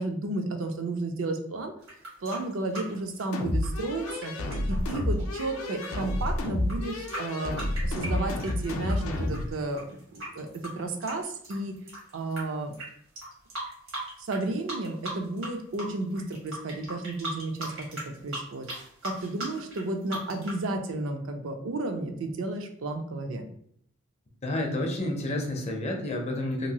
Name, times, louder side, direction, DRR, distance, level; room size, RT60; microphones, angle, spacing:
voice 1, 0.0-1.7 2.2-4.3 4.7-7.5 7.8-9.8 10.1-10.5 10.8-11.7 12.1-12.7 14.2-17.9 18.2-18.7 19.0-23.5, right 2 dB, 65° right, 5 dB, 0.4 m, -32 dB
sound 1, 1.8-8.9 9.3-12.4 12.7-12.9 13.2-14.4 14.7-15.5 15.7-20.6, right 1 dB, 85° right, 1.4 m, -38 dB
sound 2, 3.3-9.5, left 1 dB, 85° left, 0.4 m, -30 dB
voice 2, 24.4-26.7, left 1 dB, 30° left, 2 dB, 0.5 m, -30 dB
2.9 x 2.6 x 2.8 m, 0.66 s
head